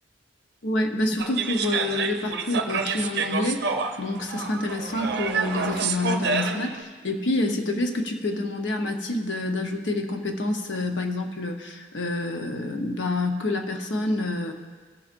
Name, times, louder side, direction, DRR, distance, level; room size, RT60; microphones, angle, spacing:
voice 1, 0.6-3.6 4.0-14.5, left 2 dB, 80° left, 4 dB, 0.9 m, -27 dB
sound 1, 1.2-6.8, right 5 dB, 60° right, 0.5 m, -28 dB
18.0 x 7.2 x 2.6 m, 1.5 s
head